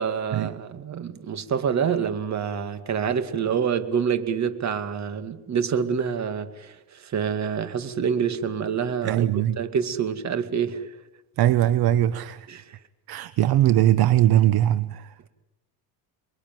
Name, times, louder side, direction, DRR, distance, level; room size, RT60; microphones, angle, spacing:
voice 1, 0.0-9.3 9.6-10.9 12.5-12.7, right 7 dB, 40° right, 2.4 m, -27 dB
voice 2, 9.0-9.6 11.4-12.5 13.1-15.1, right 12 dB, 60° right, 1.1 m, -20 dB
29.5 x 21.5 x 9.3 m
cardioid pair, 125°, 43 cm